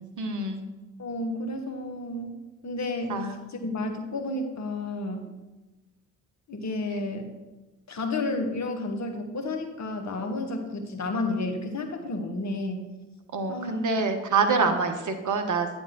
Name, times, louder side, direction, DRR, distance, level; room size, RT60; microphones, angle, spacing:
voice 1, 0.2-0.6 3.1-3.4 13.3-15.7, right 4 dB, 45° right, 5 dB, 1.0 m, -26 dB
voice 2, 1.0-2.4 2.6-5.3 6.5-7.3 7.9-12.9 13.5-13.9 14.6-14.8, left 2 dB, 40° left, 5 dB, 1.2 m, -31 dB
8.9 x 3.5 x 5.9 m, 1.1 s
hypercardioid pair, 40°, 42 cm